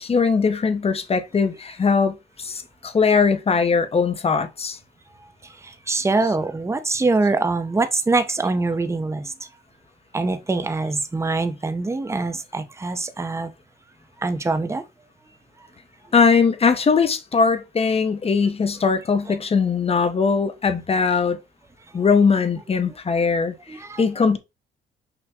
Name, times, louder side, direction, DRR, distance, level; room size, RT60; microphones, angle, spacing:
voice 1, 0.0-4.8 16.1-21.4 21.9-24.4, left 5 dB, 30° left, 0.7 m, -20 dB
voice 2, 5.2-9.5 10.1-13.5 14.2-14.8 19.3-19.4 23.7-24.0, right 3 dB, 15° right, 0.5 m, -24 dB
5.9 x 2.1 x 3.5 m
cardioid pair, 90°, 20 cm